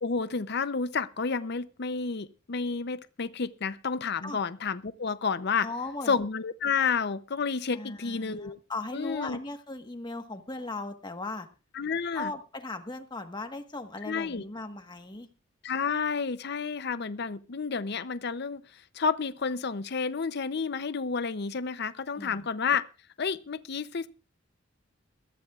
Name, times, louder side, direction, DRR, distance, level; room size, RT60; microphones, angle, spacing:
voice 1, 0.0-5.7 6.1-8.6 8.9-9.4 11.7-12.3 14.0-14.4 15.6-22.8 23.2-24.1, left 5 dB, 60° left, 0.7 m, -30 dB
voice 2, 5.6-6.2 7.7-11.5 12.1-15.3 22.2-22.5, left 2 dB, 25° left, 1.4 m, -38 dB
21.5 x 14.0 x 2.4 m
head